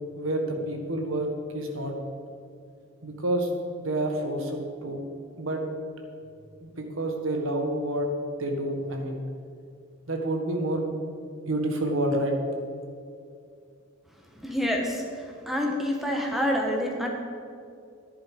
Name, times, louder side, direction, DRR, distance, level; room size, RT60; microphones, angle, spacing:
voice 1, 0.1-2.0 3.0-3.5 3.8-5.0 5.4-5.6 6.6-8.1 8.4-9.2 10.1-10.9 11.5-12.3, right 1 dB, 85° right, 3 dB, 1.7 m, -28 dB
voice 2, 14.3-17.1, equal, ahead, 0 dB, 1.4 m, -28 dB
11.0 x 10.5 x 5.3 m, 2.4 s
head